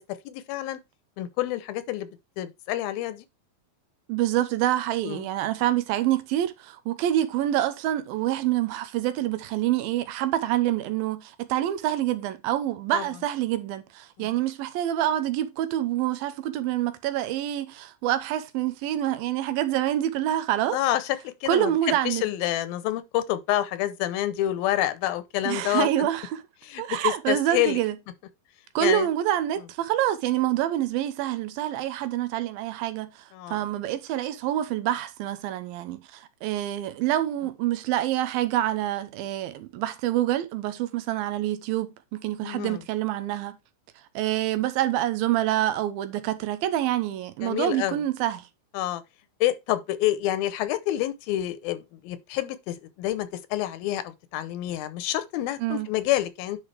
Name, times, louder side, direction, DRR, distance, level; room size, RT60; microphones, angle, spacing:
voice 1, 0.3-0.8 1.2-2.1 2.4-3.2 5.0-5.3 12.9-13.0 14.2-14.3 20.7-26.1 26.6-27.8 28.8-29.1 33.3-33.6 42.4-42.8 47.4-48.0 48.7-49.0 49.4-56.6, left 14 dB, 85° left, 2.6 m, -28 dB
voice 2, 4.1-20.8 21.5-22.2 25.4-26.4 26.8-28.0 28.8-43.6 44.2-48.5 55.6-55.9, right 13 dB, 90° right, 2.6 m, -26 dB
10.0 x 4.8 x 3.3 m
omnidirectional pair, 4.1 m